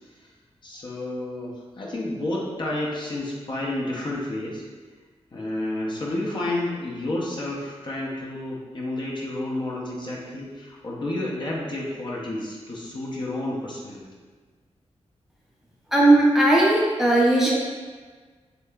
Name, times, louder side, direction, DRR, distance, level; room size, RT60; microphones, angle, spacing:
voice 1, 0.6-4.6 5.3-14.1, left 1 dB, 45° left, -3 dB, 0.7 m, -30 dB
voice 2, 15.9-17.5, right 1 dB, 5° right, -5 dB, 0.6 m, -17 dB
6.5 x 2.8 x 2.3 m, 1.5 s
wide cardioid pair, 165°, 11 cm